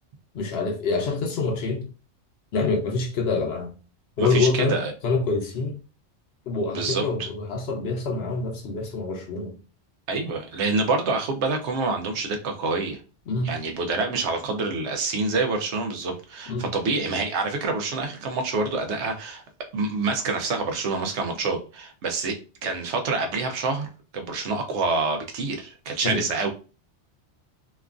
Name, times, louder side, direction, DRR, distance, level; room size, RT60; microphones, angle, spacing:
voice 1, 0.3-1.9 2.5-3.7 4.2-4.8 5.0-5.8 6.5-9.6 13.3-13.5 16.5-16.7 26.0-26.2, left 3 dB, 65° left, 0.8 m, -26 dB
voice 2, 4.2-4.9 6.7-7.3 10.1-13.0 13.4-19.4 19.7-22.4 22.6-23.9 24.1-26.5, right 3 dB, 75° right, 0.9 m, -27 dB
2.9 x 2.3 x 2.4 m
omnidirectional pair, 1.2 m